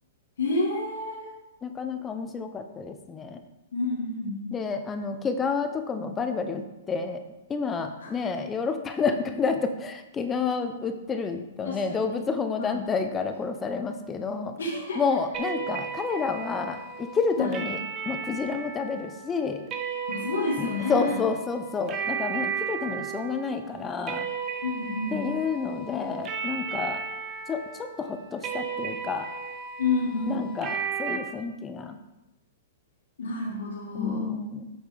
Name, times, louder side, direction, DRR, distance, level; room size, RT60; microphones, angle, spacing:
voice 1, 0.4-1.3 3.7-4.5 8.0-8.1 11.6-12.2 12.6-12.9 14.6-15.0 17.4-17.6 20.1-21.2 24.6-25.2 29.8-30.4 33.2-34.3, left 3 dB, 80° left, -4 dB, 1.7 m, -29 dB
voice 2, 1.6-3.4 4.5-7.2 7.5-14.5 15.0-17.8 18.1-19.6 20.6-24.3 25.1-27.0 27.5-29.3 30.3-32.0 33.9-34.7, left 5 dB, 20° left, 7 dB, 0.6 m, -29 dB
sound 1, 15.3-31.2, right 6 dB, 30° right, 1.1 m, -35 dB
8.0 x 6.4 x 3.4 m, 0.97 s
hypercardioid pair, 125°, 0 cm